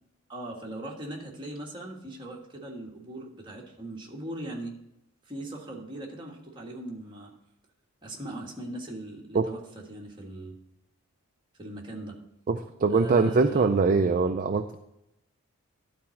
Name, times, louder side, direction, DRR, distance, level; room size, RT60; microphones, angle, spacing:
voice 1, 0.3-4.8 5.3-7.3 8.0-9.6 9.9-10.6 11.6-12.1 12.9-13.7, right 1 dB, 20° right, -2 dB, 1.6 m, -39 dB
voice 2, 12.5-14.8, right 4 dB, 35° right, 6 dB, 0.4 m, -23 dB
12.0 x 4.3 x 5.8 m, 0.85 s
head